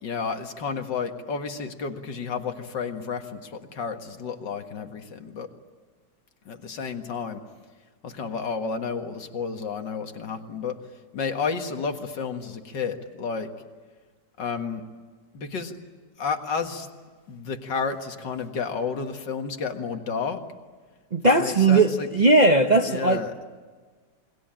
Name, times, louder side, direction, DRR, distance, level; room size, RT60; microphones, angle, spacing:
voice 1, 0.0-5.5 6.5-7.4 8.0-10.8 11.1-13.5 14.4-14.8 15.3-15.8 16.2-16.9 17.3-20.4 21.2-22.1 22.8-23.3, left 5 dB, 80° left, 6 dB, 2.4 m, -31 dB
voice 2, 21.1-23.2, right 2 dB, 35° right, 5 dB, 0.8 m, -18 dB
28.5 x 21.5 x 8.9 m, 1.5 s
omnidirectional pair, 1.9 m